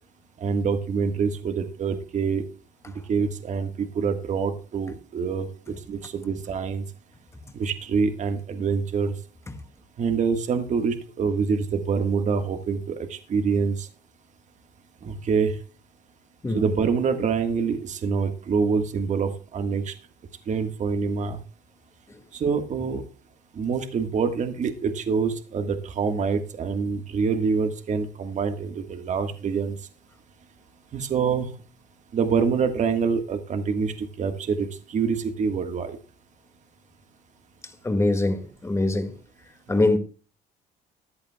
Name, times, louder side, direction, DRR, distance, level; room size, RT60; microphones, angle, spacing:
voice 1, 0.4-2.4 2.9-6.8 7.5-9.1 10.0-13.9 15.0-15.5 16.5-19.9 20.5-21.4 22.3-23.0 23.5-29.7 30.9-31.5 32.1-36.0 39.7-39.8, right 5 dB, 45° right, 1.6 m, -26 dB
voice 2, 37.8-39.1 39.7-40.0, left 2 dB, 15° left, 2.0 m, -23 dB
14.5 x 10.5 x 2.3 m
cardioid pair, 110°, 17 cm